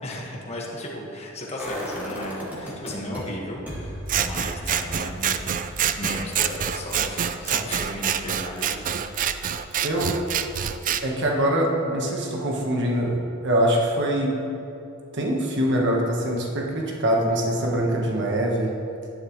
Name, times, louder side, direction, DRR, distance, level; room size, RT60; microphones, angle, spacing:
voice 1, 0.0-5.4 5.9-8.9, left 1 dB, 30° left, -3 dB, 1.6 m, -35 dB
sound 1, 1.6-3.2 3.7-9.5 9.8-9.9, equal, 10° right, 2.3 m, -38 dB
Scissors, 4.1-11.0, right 8 dB, 40° right, 0.4 m, -26 dB
voice 2, 9.8-10.3 11.0-14.4 15.1-18.7, right 1 dB, 55° right, -1 dB, 1.3 m, -23 dB
11.0 x 10.5 x 3.1 m, 2.8 s
head